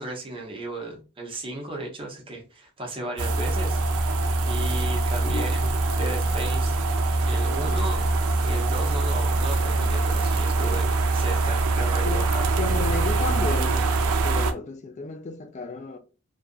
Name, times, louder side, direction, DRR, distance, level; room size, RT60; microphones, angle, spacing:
voice 1, 0.0-3.8 4.4-6.7 7.3-8.1 8.4-12.4, right 1 dB, 25° right, 0.6 m, -35 dB
sound 1, 3.2-14.5, right 3 dB, 75° right, 0.4 m, -23 dB
voice 2, 12.5-13.9 14.2-16.0, left 4 dB, 30° left, 0.3 m, -32 dB
2.6 x 2.4 x 2.3 m
head